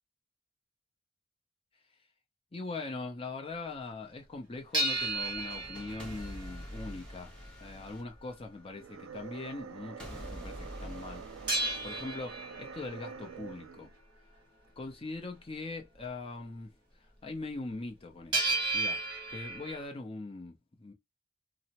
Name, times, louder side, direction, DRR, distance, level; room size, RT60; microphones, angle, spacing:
voice 1, 2.5-7.3 7.6-13.9 14.8-16.8 17.2-19.0 19.3-20.9, left 3 dB, 30° left, 0.6 m, -41 dB
sound 1, 4.7-8.8 10.0-12.8, equal, 5° left, 1.0 m, -46 dB
sound 2, 4.7-7.1 11.5-13.3 18.3-19.8, right 2 dB, 25° right, 1.4 m, -33 dB
sound 3, 8.6-14.0, right 6 dB, 90° right, 0.4 m, -46 dB
3.1 x 2.0 x 2.8 m
head